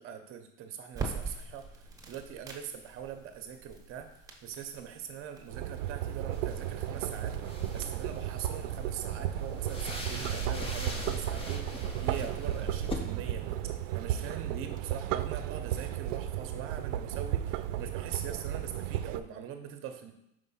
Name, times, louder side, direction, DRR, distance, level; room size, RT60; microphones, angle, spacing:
voice 1, 0.0-13.5 13.9-20.1, right 8 dB, 35° right, 6 dB, 0.8 m, -42 dB
sound 1, 0.9-14.4, right 4 dB, 10° right, 0.9 m, -47 dB
sound 2, 5.5-19.2, right 11 dB, 75° right, 0.5 m, -34 dB
sound 3, 6.3-12.9, left 1 dB, 15° left, 0.6 m, -41 dB
5.2 x 3.3 x 5.6 m, 0.82 s
supercardioid pair, 140°, 38 cm